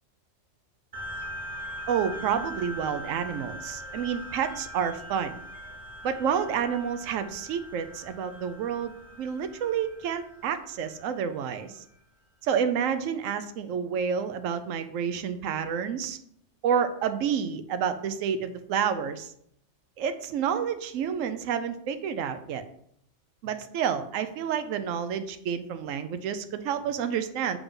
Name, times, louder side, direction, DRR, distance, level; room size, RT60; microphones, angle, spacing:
sound 1, 0.9-11.8, equal, 40° right, 1.5 m, -41 dB
voice 1, 1.9-5.4 6.0-11.8 12.4-16.2 16.6-19.3 20.0-22.6 23.4-27.6, right 7 dB, 85° right, 9 dB, 1.0 m, -29 dB
7.1 x 3.6 x 5.2 m, 0.69 s
omnidirectional pair, 1.3 m